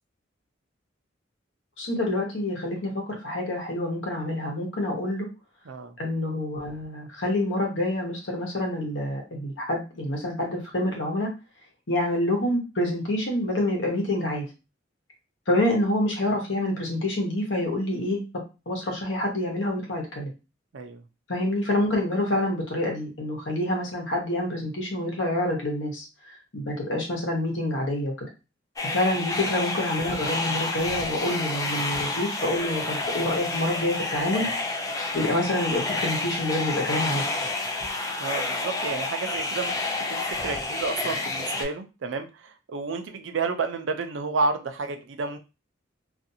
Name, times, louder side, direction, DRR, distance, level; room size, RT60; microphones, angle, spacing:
voice 1, 1.8-5.3 6.0-11.3 11.9-14.4 15.5-18.2 18.7-20.3 21.3-26.0 26.5-28.1 28.9-34.5 35.1-37.2, left 1 dB, 75° left, 0 dB, 1.1 m, -27 dB
sound 1, 28.8-41.6, left 2 dB, 20° left, 0.4 m, -29 dB
voice 2, 38.2-39.7 40.1-45.4, right 4 dB, 80° right, 7 dB, 0.5 m, -30 dB
2.5 x 2.5 x 2.7 m, 0.29 s
head